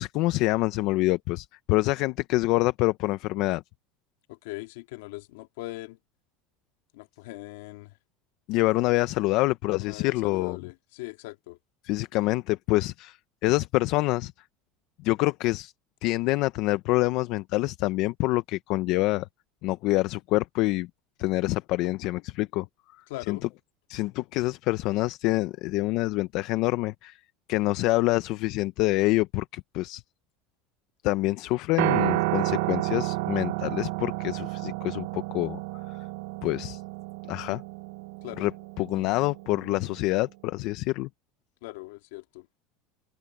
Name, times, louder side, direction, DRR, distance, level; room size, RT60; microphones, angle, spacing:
voice 1, 0.0-3.6 8.5-10.6 11.8-13.2 13.4-14.3 15.0-15.7 16.0-19.3 19.6-20.9 21.2-22.7 23.3-23.4 23.9-27.2 27.5-30.0 31.0-35.6 35.9-36.1 36.4-36.8 37.3-37.6 38.4-38.5 38.8-41.1, left 19 dB, 60° left, 0.7 m, -26 dB
voice 2, 4.3-6.0 6.9-7.9 9.8-11.6 23.1-23.4 38.2-38.5 41.6-42.5, left 20 dB, 80° left, 2.0 m, -40 dB
Piano, 31.8-40.0, right 23 dB, 75° right, 0.6 m, -31 dB
supercardioid pair, 120°, 0 cm